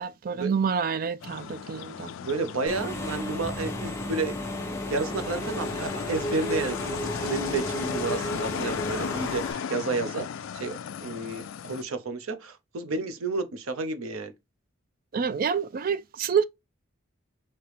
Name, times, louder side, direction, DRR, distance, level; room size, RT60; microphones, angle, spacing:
voice 1, 0.0-2.1 15.1-16.4, right 6 dB, 45° right, 0.3 m, -27 dB
sound 1, 1.2-11.8, left 7 dB, 70° left, 0.3 m, -36 dB
voice 2, 2.2-4.5 4.9-10.3 10.5-14.3, right 3 dB, 85° right, 0.7 m, -31 dB
Engine / Mechanisms, 2.7-9.5, left 1 dB, 15° left, 0.6 m, -33 dB
3.3 x 2.9 x 4.6 m
head